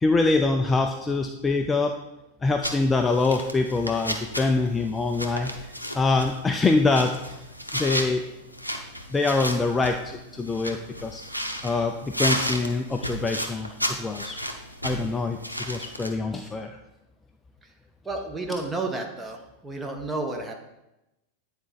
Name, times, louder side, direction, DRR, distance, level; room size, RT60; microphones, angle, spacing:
voice 1, 0.0-1.9 2.4-5.6 5.9-7.4 7.7-8.2 9.1-11.2 11.6-14.4 14.8-16.8, left 3 dB, 15° left, 5 dB, 0.4 m, -24 dB
sound 1, 2.6-16.1, equal, 90° left, 0.7 m, -33 dB
voice 2, 18.0-20.5, right 2 dB, 10° right, 3 dB, 1.0 m, -31 dB
9.3 x 4.4 x 3.9 m, 0.93 s
figure-of-eight pair, 90°, 0 cm